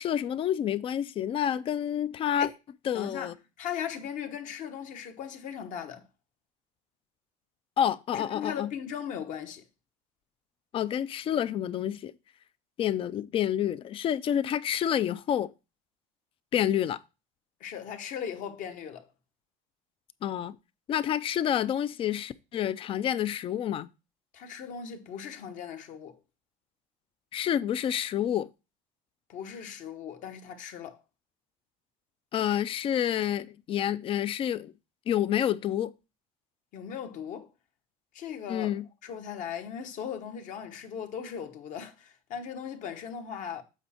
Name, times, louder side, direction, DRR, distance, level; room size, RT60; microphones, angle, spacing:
voice 1, 0.0-2.5 2.9-3.3 7.8-8.7 10.7-12.1 12.8-15.5 16.5-17.0 20.2-20.6 20.9-23.9 27.3-28.5 32.3-34.7 35.1-35.9 38.5-38.9, left 10 dB, 35° left, 0.4 m, -28 dB
voice 2, 2.9-3.3 3.6-6.0 8.1-9.6 17.6-19.1 24.3-26.2 29.3-31.0 36.7-37.5 38.1-38.7 39.0-43.6, left 8 dB, 55° left, 1.1 m, -38 dB
8.1 x 4.2 x 4.2 m
cardioid pair, 140°, 16 cm